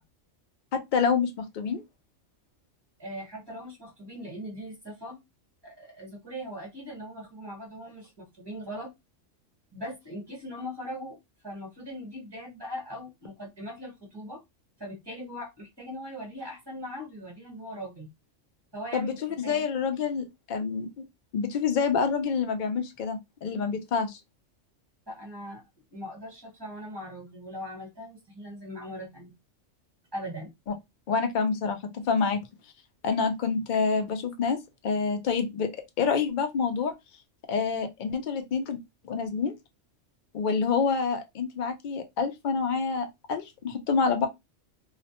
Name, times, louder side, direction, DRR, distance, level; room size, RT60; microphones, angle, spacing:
voice 1, 0.7-1.8 18.9-21.0 21.3-24.2 31.1-32.4 33.0-35.7 36.0-36.9 37.5-38.8 39.0-39.5 40.3-44.3, left 5 dB, 65° left, 0.4 m, -27 dB
voice 2, 3.0-5.2 5.6-8.9 9.7-11.2 11.4-14.4 14.8-18.1 18.7-19.6 25.1-25.6 25.9-29.3 30.1-30.5, equal, 20° right, 1.0 m, -40 dB
2.3 x 2.1 x 2.8 m
omnidirectional pair, 1.3 m